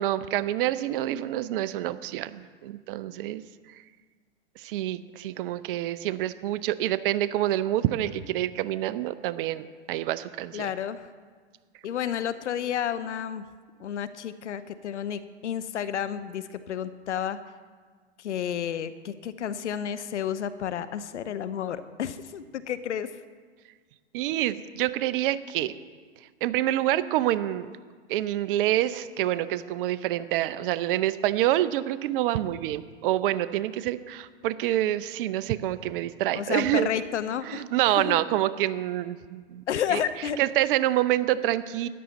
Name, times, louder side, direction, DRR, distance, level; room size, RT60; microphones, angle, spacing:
voice 1, 0.0-3.4 4.6-10.7 24.1-25.7 26.4-27.7 28.1-36.9 37.4-39.6 39.9-40.0 40.4-41.9, right 13 dB, 50° right, 14 dB, 0.6 m, -27 dB
voice 2, 10.5-11.1 11.8-13.4 13.8-17.4 18.2-23.1 36.3-38.2 39.7-40.4, left 9 dB, 80° left, 13 dB, 0.7 m, -31 dB
13.0 x 10.0 x 4.1 m, 1.5 s
hypercardioid pair, 110°, 35 cm